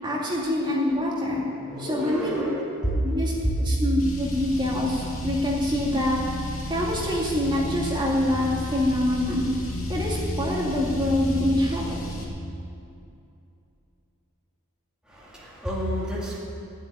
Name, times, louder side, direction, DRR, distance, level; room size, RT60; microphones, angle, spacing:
voice 1, 0.0-1.4 1.8-2.5 3.0-3.3 3.6-6.2 6.7-9.5 9.9-12.0, left 1 dB, 20° right, -4 dB, 2.2 m, -25 dB
voice 2, 1.6-3.2 3.4-3.5 15.1-16.4, equal, 5° right, -6 dB, 2.3 m, -29 dB
Car, 4.0-12.2, equal, 70° left, 2.6 m, -32 dB
14.5 x 8.3 x 9.9 m, 2.6 s
head